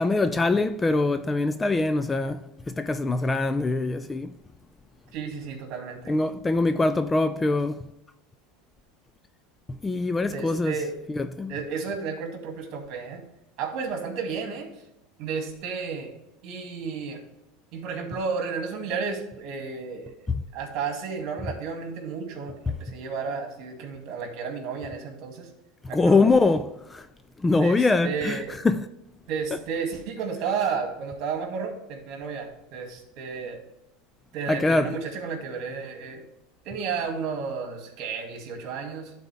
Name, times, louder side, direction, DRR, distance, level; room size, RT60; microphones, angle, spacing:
voice 1, 0.0-4.3 6.1-7.9 9.7-10.8 11.1-11.5 20.3-20.4 25.8-27.1 27.4-28.9 29.5-29.6 34.5-35.0, left 3 dB, 15° left, 0.3 m, -23 dB
voice 2, 5.1-6.3 10.3-10.9 11.5-13.2 13.6-14.7 15.2-16.1 16.4-17.2 17.7-20.1 20.5-25.5 25.9-26.2 27.6-28.5 29.3-33.6 34.3-36.2 36.6-39.1, right 5 dB, 55° right, 2.2 m, -32 dB
12.0 x 4.2 x 3.4 m
supercardioid pair, 130°, 0 cm